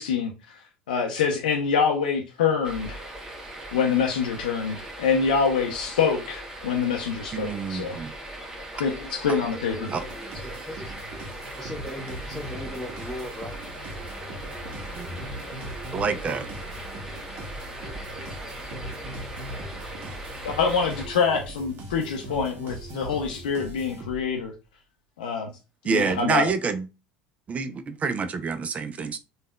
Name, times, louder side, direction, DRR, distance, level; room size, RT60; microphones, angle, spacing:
voice 1, 0.0-3.0 3.7-8.0 8.7-9.9 20.4-24.5 25.2-25.6 25.8-26.5, left 6 dB, 75° left, 0.5 m, -25 dB
sound 1, 2.6-21.1, right 1 dB, 15° right, 1.0 m, -39 dB
voice 2, 7.3-8.1 9.9-10.0 15.9-16.5 25.8-26.9 27.5-29.2, right 5 dB, 30° right, 0.4 m, -27 dB
voice 3, 9.5-10.9 11.6-13.6, left 1 dB, 5° left, 0.7 m, -38 dB
sound 2, 9.9-24.4, right 1 dB, 50° right, 0.8 m, -40 dB
3.4 x 2.3 x 2.2 m
hypercardioid pair, 75°, 5 cm